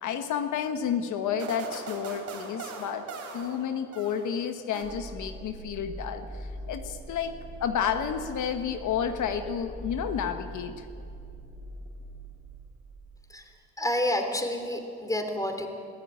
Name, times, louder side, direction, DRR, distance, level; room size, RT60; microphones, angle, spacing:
voice 1, 0.0-3.1 3.3-7.3 7.6-10.9, left 8 dB, 75° left, 7 dB, 1.3 m, -31 dB
sound 1, 1.4-4.4 4.7-5.4, right 4 dB, 70° right, 3.8 m, -40 dB
sound 2, 4.8-13.5, right 1 dB, 40° right, 4.0 m, -42 dB
voice 2, 13.8-15.7, left 1 dB, 10° left, 5 dB, 3.2 m, -29 dB
21.5 x 14.5 x 9.1 m, 2.5 s
cardioid pair, 90°, 30 cm